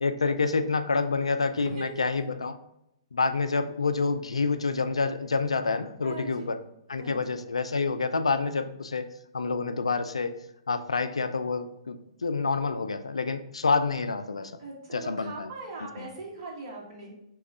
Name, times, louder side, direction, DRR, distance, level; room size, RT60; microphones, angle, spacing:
voice 1, 0.0-2.6 3.1-6.6 6.9-9.1 9.3-10.3 10.7-12.0 12.2-14.5 14.9-15.5 16.0-16.1, left 4 dB, 80° left, 10 dB, 0.3 m, -28 dB
voice 2, 1.6-2.2 6.0-6.5 7.0-7.2 14.6-17.2, right 3 dB, 45° right, -3 dB, 1.6 m, -40 dB
3.4 x 3.0 x 4.7 m, 0.81 s
figure-of-eight pair, 120°, 3 cm